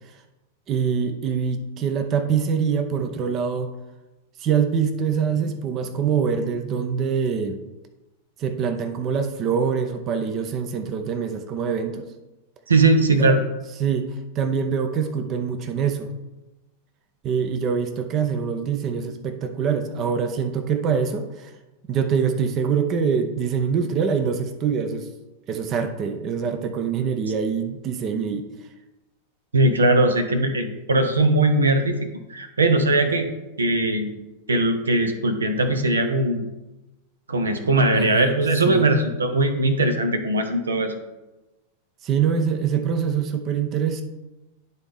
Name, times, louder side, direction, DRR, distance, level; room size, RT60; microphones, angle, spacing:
voice 1, 0.7-3.7 4.4-7.6 8.4-12.1 13.1-13.4 13.8-16.1 17.2-21.5 21.9-25.1 25.5-28.5 37.9-38.3 38.6-38.9 42.0-44.0, right 6 dB, 35° right, 7 dB, 0.6 m, -24 dB
voice 2, 12.7-13.4 29.5-32.0 32.3-33.3 33.6-34.1 34.5-36.4 37.3-41.0, right 2 dB, 75° right, 7 dB, 0.7 m, -20 dB
10.5 x 4.0 x 3.5 m, 1.1 s
figure-of-eight pair, 90°, 0 cm